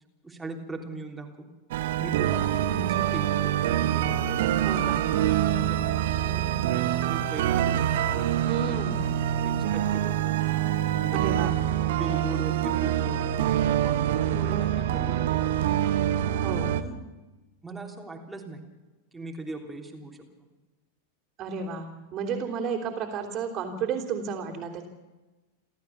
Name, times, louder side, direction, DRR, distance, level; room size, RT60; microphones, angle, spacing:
voice 1, 0.2-1.5 2.0-3.5 3.9-8.3 8.6-9.0 9.4-10.4 10.9-11.3 11.8-15.5 16.1-17.0 17.6-18.6 19.1-20.2, right 3 dB, 10° right, 1 dB, 3.4 m, -40 dB
sound 1, 1.7-16.8, right 11 dB, 55° right, 1.4 m, -25 dB
voice 2, 4.6-5.1 8.4-9.0 11.1-11.5 16.4-16.7 21.4-24.9, right 6 dB, 30° right, -3 dB, 3.5 m, -32 dB
29.5 x 13.0 x 7.1 m, 1.2 s
figure-of-eight pair, 90°, 0 cm